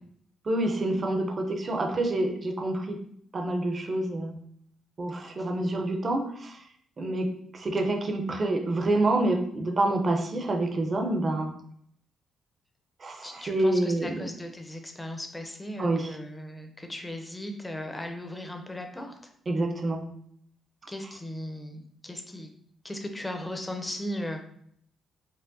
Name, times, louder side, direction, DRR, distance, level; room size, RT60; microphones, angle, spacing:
voice 1, 0.5-3.0 3.3-4.3 5.0-6.6 7.0-11.5 13.0-14.3 15.8-16.2 19.5-20.0, right 2 dB, 35° right, 4 dB, 0.5 m, -27 dB
voice 2, 13.2-19.2 20.9-22.5 22.8-24.4, left 1 dB, 10° left, 4 dB, 0.6 m, -37 dB
4.5 x 2.1 x 2.6 m, 0.67 s
cardioid pair, 90°, 0 cm